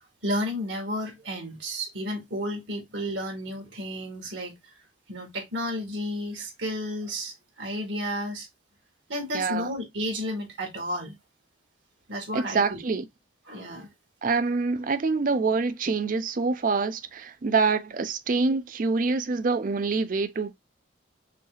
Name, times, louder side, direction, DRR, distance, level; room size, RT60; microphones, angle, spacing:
voice 1, 0.2-4.5 5.1-8.5 9.1-11.2 12.1-12.8 13.5-13.9, equal, 60° right, 1.8 m, -32 dB
voice 2, 9.3-9.7 12.3-13.1 14.2-20.5, right 4 dB, 40° right, 0.4 m, -26 dB
5.8 x 2.4 x 2.3 m
head